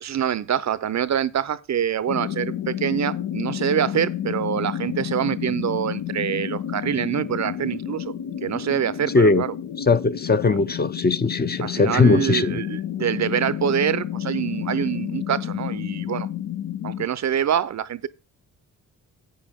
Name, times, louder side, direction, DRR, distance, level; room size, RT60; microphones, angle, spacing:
voice 1, 0.0-8.1 8.4-9.5 11.6-16.3 16.8-18.1, right 9 dB, 50° right, 0.7 m, -25 dB
sound 1, 2.1-17.1, left 10 dB, 70° left, 0.9 m, -30 dB
voice 2, 9.8-12.6, left 3 dB, 30° left, 0.7 m, -19 dB
10.5 x 8.2 x 3.6 m
supercardioid pair, 60°, 35 cm